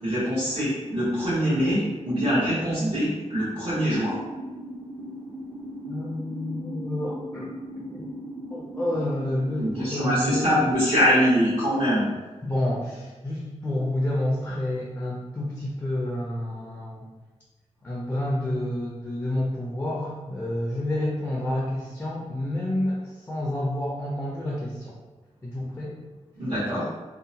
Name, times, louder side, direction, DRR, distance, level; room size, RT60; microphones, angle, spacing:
voice 1, 0.0-4.2 9.6-12.1 26.4-26.8, equal, 60° right, -13 dB, 1.0 m, -23 dB
sound 1, 3.7-10.6, equal, 35° right, 0.6 m, -38 dB
voice 2, 5.9-8.1 8.5-10.6 12.4-17.1 17.8-24.9 25.4-26.0, left 1 dB, 15° left, -4 dB, 0.4 m, -29 dB
2.7 x 2.1 x 2.7 m, 1.2 s
wide cardioid pair, 150°, 12 cm